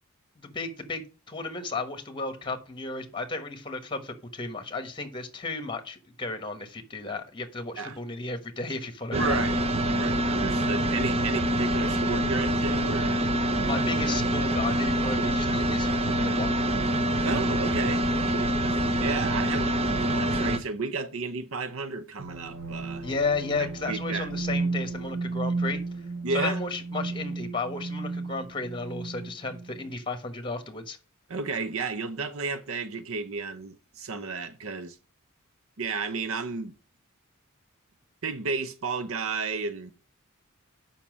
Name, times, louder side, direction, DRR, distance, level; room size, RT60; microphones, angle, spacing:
voice 1, 0.4-9.4 13.6-16.6 23.0-25.8 26.3-31.0, left 3 dB, 20° left, 1.3 m, -33 dB
sound 1, 9.1-20.6, right 1 dB, 30° right, 0.8 m, -25 dB
voice 2, 9.1-9.6 9.9-13.2 17.2-18.1 19.0-23.0 23.6-24.3 26.2-26.6 31.3-35.0 35.8-36.7 38.2-39.9, right 4 dB, 65° right, 0.7 m, -32 dB
sound 2, 22.2-29.9, right 3 dB, 85° right, 1.2 m, -33 dB
7.1 x 5.7 x 6.1 m
head